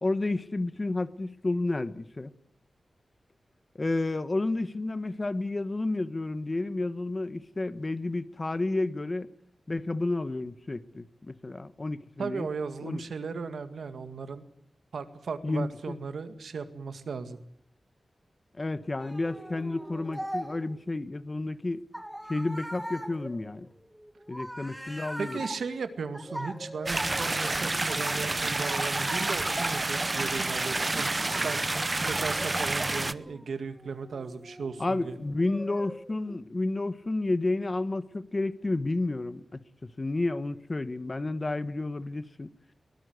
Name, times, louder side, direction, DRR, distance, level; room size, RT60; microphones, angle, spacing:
voice 1, 0.0-2.3 3.7-9.3 9.7-12.5 12.8-13.0 15.4-16.0 18.6-21.8 22.3-23.7 24.3-25.4 34.8-42.5, left 2 dB, 30° left, 1.1 m, -31 dB
voice 2, 12.2-14.4 14.9-17.4 25.2-35.2, right 5 dB, 90° right, 2.1 m, -36 dB
sound 1, 19.0-20.8 21.9-27.9 28.6-30.9 31.3-36.4, equal, 5° right, 1.7 m, -41 dB
sound 2, 26.9-33.1, right 2 dB, 30° right, 0.8 m, -29 dB
23.5 x 19.0 x 8.0 m
wide cardioid pair, 105°, 0 cm